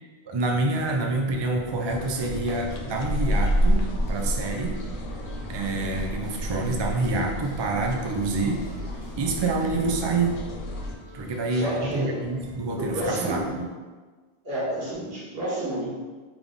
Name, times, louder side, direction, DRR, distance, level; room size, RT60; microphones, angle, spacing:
voice 1, 0.3-4.8 5.5-8.6 9.2-10.4 11.1-13.7, right 3 dB, 45° right, 1 dB, 0.3 m, -27 dB
sound 1, 0.7-13.7, right 1 dB, 25° right, 0.9 m, -46 dB
sound 2, 1.9-10.9, equal, 60° left, 0.7 m, -29 dB
voice 2, 11.5-12.2 12.7-13.5 14.4-15.9, right 1 dB, 65° right, -7 dB, 1.6 m, -30 dB
3.7 x 3.6 x 3.5 m, 1.4 s
omnidirectional pair, 1.1 m